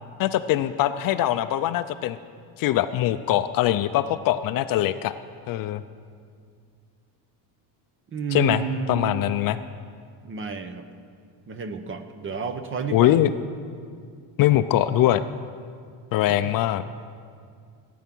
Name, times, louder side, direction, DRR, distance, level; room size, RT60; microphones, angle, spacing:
voice 1, 0.2-2.2 2.6-5.1 5.5-5.8 8.3-8.6 8.9-9.6 12.9-13.3 14.4-15.2 16.1-16.8, left 13 dB, 50° left, 12 dB, 0.4 m, -22 dB
voice 2, 8.1-9.2 10.2-10.8 11.5-13.2 16.3-16.5, right 5 dB, 30° right, 9 dB, 0.7 m, -31 dB
16.0 x 9.3 x 6.0 m, 2.2 s
cardioid pair, 160°, 44 cm